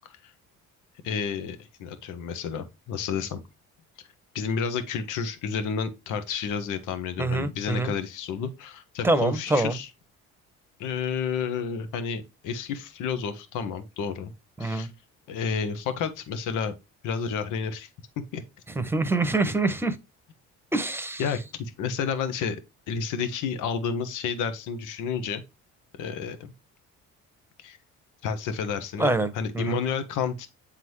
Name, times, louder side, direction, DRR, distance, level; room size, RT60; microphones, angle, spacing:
voice 1, 1.0-3.4 4.3-9.9 10.8-14.3 14.6-14.9 15.3-16.7 17.0-17.9 18.3-18.4 21.2-22.6 22.9-25.4 26.0-26.5 27.6-27.8 28.2-30.5, left 6 dB, 75° left, 1.1 m, -30 dB
voice 2, 7.2-7.9 9.0-9.8 14.6-14.9 18.7-20.0 20.7-21.2 29.0-29.8, right 2 dB, 5° right, 1.0 m, -25 dB
8.1 x 3.7 x 3.1 m
cardioid pair, 90°, 31 cm